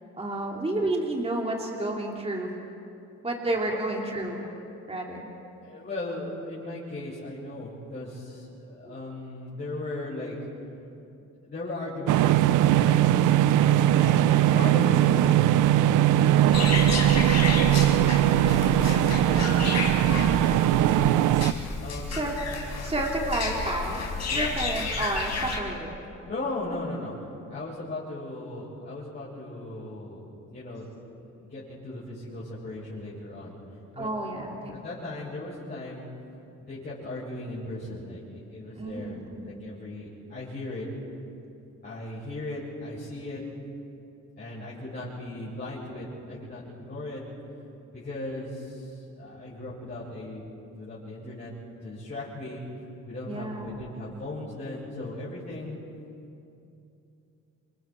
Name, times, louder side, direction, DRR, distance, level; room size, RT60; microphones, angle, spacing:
voice 1, 0.2-2.5 3.2-4.5 4.9-5.2 8.8-8.9 22.1-22.3 22.8-24.0 24.3-25.9 34.0-34.8 38.8-39.6 53.3-54.0, right 2 dB, 20° right, -1 dB, 2.9 m, -30 dB
voice 2, 5.6-10.3 11.4-15.5 16.6-17.4 17.7-21.3 21.8-22.3 24.3-24.5 26.3-27.1 27.5-30.2 30.5-30.9 31.3-33.6 33.9-34.1 34.6-36.0 36.6-40.9 41.8-43.4 44.4-47.2 47.9-50.4 50.7-51.5 51.8-52.6 53.1-55.8, left 2 dB, 35° left, -10 dB, 7.9 m, -37 dB
sound 1, 12.1-21.5, right 12 dB, 85° right, 0.6 m, -20 dB
sound 2, 16.5-25.6, left 4 dB, 60° left, 4.8 m, -31 dB
29.0 x 25.0 x 4.6 m, 2.7 s
cardioid pair, 90°, 30 cm